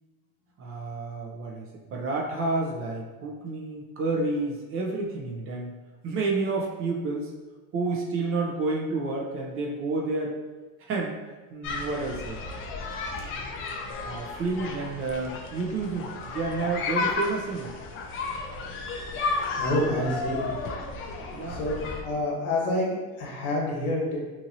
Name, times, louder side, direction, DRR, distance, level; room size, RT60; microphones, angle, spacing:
voice 1, 0.6-5.7 6.0-7.3 7.7-10.4 10.8-11.2 11.5-12.4 14.0-17.7 21.2-21.6, right 3 dB, 30° right, 0 dB, 0.4 m, -30 dB
sound 1, 11.6-22.0, left 3 dB, 30° left, 0.4 m, -33 dB
voice 2, 19.6-20.5 21.4-21.7 22.0-24.2, left 1 dB, 85° left, -2 dB, 1.1 m, -27 dB
2.8 x 2.7 x 2.6 m, 1.3 s
supercardioid pair, 110°, 43 cm